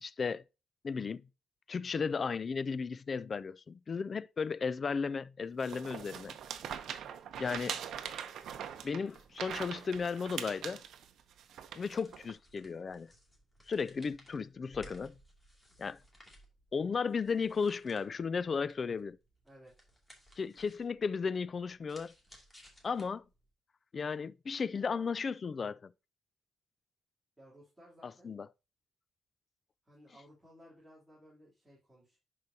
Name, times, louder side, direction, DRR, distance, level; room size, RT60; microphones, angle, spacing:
voice 1, 0.0-0.4 0.8-1.2 1.7-6.3 7.4-7.8 8.8-10.8 11.7-13.1 13.7-15.1 15.8-16.0 16.7-19.2 20.4-22.1 22.8-23.2 23.9-25.9 28.0-28.5, left 5 dB, 40° left, 0.3 m, -35 dB
sound 1, 5.6-12.3, right 9 dB, 75° right, 0.8 m, -42 dB
sound 2, 11.7-23.5, equal, 15° left, 2.5 m, -60 dB
voice 2, 19.4-19.9 27.4-28.3 29.8-32.2, equal, 10° right, 3.3 m, -58 dB
10.5 x 4.9 x 2.8 m
cardioid pair, 105°, 0 cm